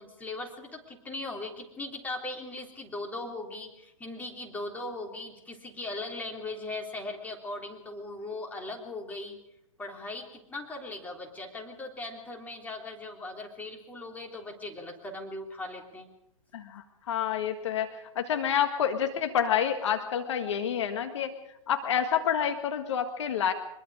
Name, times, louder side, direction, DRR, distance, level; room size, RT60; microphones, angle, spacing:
voice 1, 0.0-9.4 9.8-16.1, left 2 dB, 10° left, 0 dB, 3.6 m, -39 dB
voice 2, 16.5-21.3 21.7-23.5, left 8 dB, 55° left, 7 dB, 1.7 m, -28 dB
24.5 x 22.0 x 5.0 m, 0.82 s
figure-of-eight pair, 120°, 18 cm